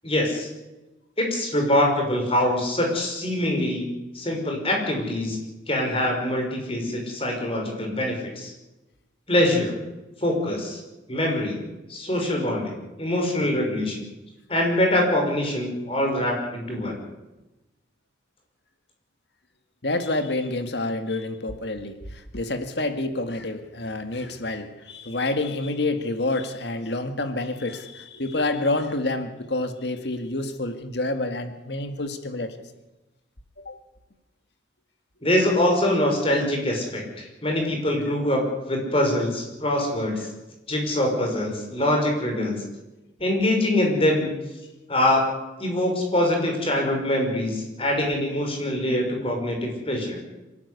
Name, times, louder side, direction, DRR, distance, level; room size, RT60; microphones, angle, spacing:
voice 1, 0.0-0.5 1.2-3.9 4.1-5.4 5.7-8.5 9.3-9.8 10.2-10.8 11.1-11.6 11.9-14.0 14.5-17.0 35.2-38.4 38.7-40.3 40.7-42.6 43.2-44.3 44.9-45.2 45.6-50.2, left 1 dB, 30° left, 1 dB, 5.8 m, -24 dB
voice 2, 19.8-32.6 33.6-33.8, left 2 dB, 65° left, 8 dB, 2.0 m, -28 dB
26.0 x 12.0 x 9.8 m, 1.0 s
head